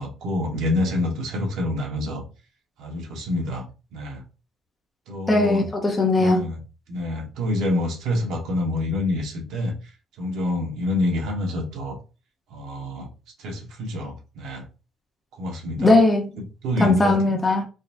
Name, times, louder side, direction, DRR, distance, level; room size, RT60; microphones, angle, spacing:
voice 1, 0.0-2.2 2.8-3.7 3.9-4.2 5.1-5.7 6.2-6.6 6.9-9.7 10.2-12.0 12.5-13.1 13.4-14.6 15.4-16.0 16.3-17.4, left 1 dB, 60° right, 1.3 m, -27 dB
voice 2, 5.3-6.4 15.8-16.3 16.8-17.7, left 2 dB, 10° left, 0.6 m, -19 dB
4.0 x 2.8 x 2.6 m
cardioid pair, 165°, 0 cm